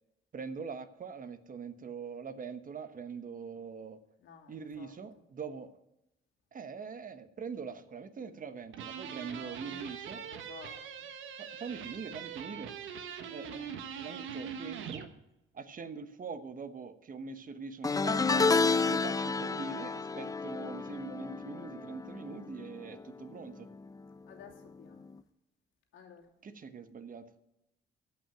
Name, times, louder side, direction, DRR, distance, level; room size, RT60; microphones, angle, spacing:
voice 1, 0.3-4.0 4.5-5.7 6.5-10.2 11.4-12.7 13.3-15.1 15.5-18.5 18.8-23.7 26.4-27.3, right 5 dB, 45° right, 11 dB, 1.2 m, -43 dB
voice 2, 4.2-4.9 9.2-9.6 10.1-11.1 24.2-25.2 25.9-26.3, left 7 dB, 85° left, 1 dB, 2.6 m, -53 dB
sound 1, 8.7-15.1, right 7 dB, 80° right, 1.3 m, -42 dB
sound 2, 17.8-23.2 23.5-23.9 25.1-25.2, left 4 dB, 20° left, 0.4 m, -30 dB
14.0 x 5.7 x 9.0 m, 0.86 s
cardioid pair, 90°, 20 cm